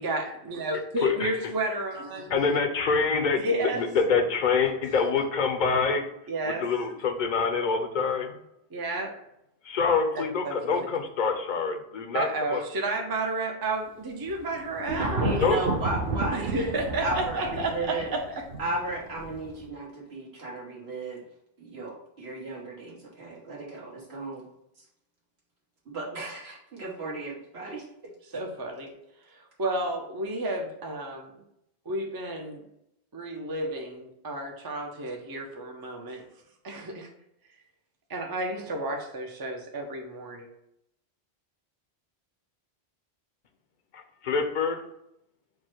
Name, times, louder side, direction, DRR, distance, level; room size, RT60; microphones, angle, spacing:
voice 1, 0.0-2.4 3.4-3.9 6.3-6.7 8.7-9.1 10.1-10.9 12.1-15.1 16.3-18.5 28.3-28.9 29.3-31.4 31.9-32.6 33.1-36.3 36.6-37.1 38.1-40.5, right 2 dB, 35° right, 2 dB, 0.4 m, -31 dB
voice 2, 1.0-1.5 2.3-6.1 6.4-8.3 9.6-12.6 15.4-15.6 43.9-44.8, left 5 dB, 55° left, 6 dB, 0.6 m, -26 dB
Thunder, 14.3-19.7, right 2 dB, 60° right, 0.8 m, -32 dB
voice 3, 15.0-18.1 18.6-21.2 21.6-24.4 25.9-28.4, right 2 dB, 90° right, -5 dB, 1.4 m, -34 dB
4.7 x 2.1 x 4.4 m, 0.80 s
omnidirectional pair, 1.1 m